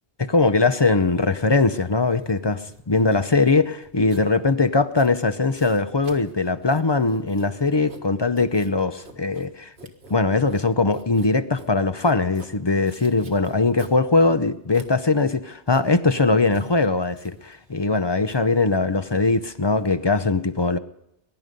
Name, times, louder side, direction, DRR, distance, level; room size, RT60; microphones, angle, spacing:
voice 1, 0.2-9.7 10.1-20.8, left 3 dB, 30° left, 0.6 m, -21 dB
Writing, 0.7-19.9, right 2 dB, 80° right, 1.9 m, -47 dB
22.0 x 11.0 x 5.3 m
omnidirectional pair, 1.0 m